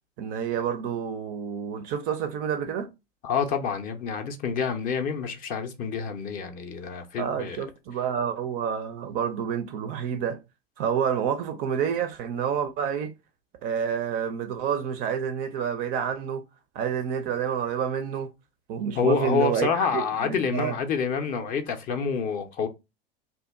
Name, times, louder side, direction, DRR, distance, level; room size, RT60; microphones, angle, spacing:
voice 1, 0.2-2.9 7.2-10.4 10.8-13.1 13.6-16.4 16.7-18.3 18.7-20.8, right 8 dB, 30° right, 0.4 m, -28 dB
voice 2, 3.2-7.6 19.0-22.7, left 6 dB, 30° left, 0.4 m, -27 dB
2.7 x 2.2 x 3.2 m
figure-of-eight pair, 80°, 30 cm